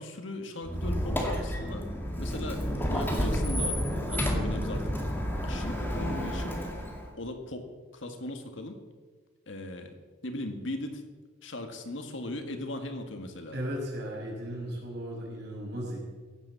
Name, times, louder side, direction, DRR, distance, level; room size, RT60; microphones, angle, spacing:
voice 1, 0.0-1.9 2.2-3.8 4.1-5.0 5.4-6.6 7.2-8.8 9.5-11.0 11.4-13.6, left 1 dB, 75° left, 5 dB, 1.8 m, -38 dB
Squeak, 0.6-7.1, equal, 10° left, 2.2 m, -30 dB
voice 2, 13.5-16.0, equal, 55° right, -3 dB, 6.0 m, -36 dB
16.5 x 8.4 x 7.5 m, 1.5 s
head